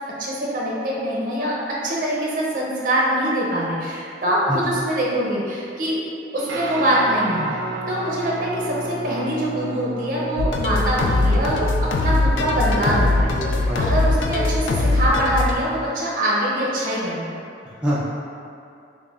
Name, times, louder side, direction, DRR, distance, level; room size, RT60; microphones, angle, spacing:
voice 1, 0.2-1.5 1.8-6.0 6.3-7.6 7.9-13.3 13.8-17.4, right 1 dB, 50° right, -5 dB, 0.6 m, -23 dB
Guitar, 6.5-15.9, right 2 dB, 90° right, 0.4 m, -33 dB
sound 1, 10.4-15.5, left 2 dB, 85° left, 0.3 m, -21 dB
voice 2, 12.8-13.8 17.6-18.1, equal, 5° right, -9 dB, 0.3 m, -27 dB
5.1 x 2.1 x 2.4 m, 2.5 s
head